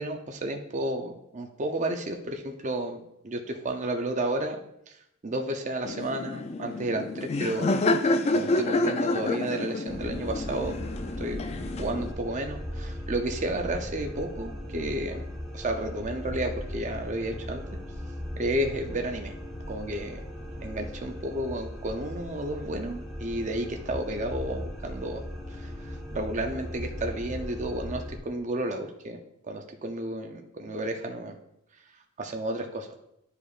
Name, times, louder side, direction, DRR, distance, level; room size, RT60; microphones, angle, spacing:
voice 1, 0.0-4.6 4.9-7.8 8.0-10.8 11.2-11.5 11.8-15.2 15.5-17.6 18.4-19.3 19.7-20.2 20.6-25.2 25.5-31.4 31.7-32.9, right 1 dB, 35° right, 4 dB, 0.6 m, -32 dB
Laughter, 5.8-12.1, left 2 dB, 30° left, 0.3 m, -28 dB
sound 1, 9.9-28.2, equal, ahead, 1.1 m, -38 dB
11.0 x 4.9 x 2.4 m, 0.79 s
head